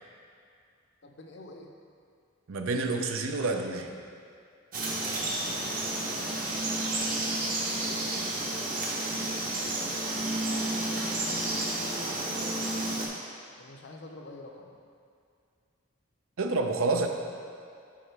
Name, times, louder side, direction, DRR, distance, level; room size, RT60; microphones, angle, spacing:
voice 1, 1.0-1.7 6.0-6.5 10.3-11.0 11.6-13.0 13.6-14.7, left 2 dB, 55° left, 2 dB, 0.7 m, -48 dB
voice 2, 2.5-4.0 16.4-17.1, right 3 dB, 70° right, 4 dB, 0.5 m, -28 dB
Frog, 4.7-13.1, right 2 dB, 45° right, 1.0 m, -31 dB
8.6 x 4.9 x 3.4 m, 2.4 s
head